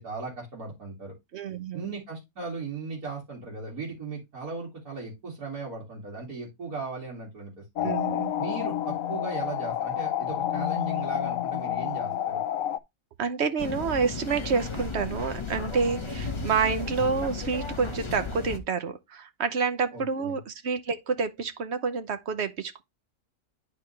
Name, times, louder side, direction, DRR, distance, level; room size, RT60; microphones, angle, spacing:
voice 1, 0.0-1.1 1.7-7.9 8.4-12.4 19.9-20.4, right 4 dB, 75° right, 2.8 m, -37 dB
voice 2, 1.3-1.8 7.8-8.3 13.2-22.8, right 5 dB, 55° right, 0.9 m, -28 dB
sound 1, 7.8-12.8, left 11 dB, 70° left, 0.9 m, -29 dB
sound 2, 13.6-18.6, left 4 dB, 25° left, 0.8 m, -34 dB
11.0 x 4.2 x 3.2 m
omnidirectional pair, 1.6 m